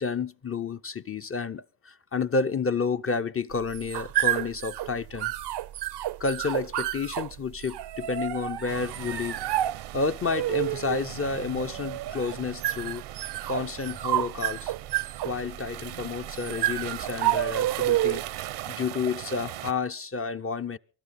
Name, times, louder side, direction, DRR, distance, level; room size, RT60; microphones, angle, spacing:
voice 1, 0.0-5.3 6.2-9.4 9.9-13.0 13.5-14.7 15.2-18.2 18.7-20.8, left 4 dB, 30° left, 0.7 m, -30 dB
sound 1, 3.5-18.4, right 14 dB, 55° right, 0.7 m, -30 dB
sound 2, 8.7-19.7, right 14 dB, 80° right, 1.0 m, -40 dB
23.5 x 12.5 x 4.2 m
supercardioid pair, 50°, 49 cm